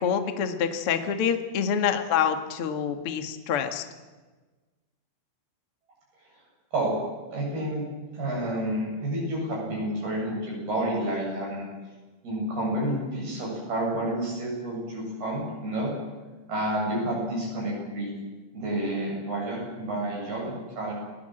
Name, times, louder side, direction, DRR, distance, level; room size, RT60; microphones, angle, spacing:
voice 1, 0.0-3.8, left 7 dB, 90° left, 7 dB, 1.2 m, -26 dB
voice 2, 7.3-7.9 8.1-11.7 12.2-15.9 16.5-18.1 18.5-20.9, right 1 dB, 50° right, -3 dB, 9.8 m, -29 dB
29.5 x 20.0 x 7.9 m, 1.3 s
omnidirectional pair, 5.8 m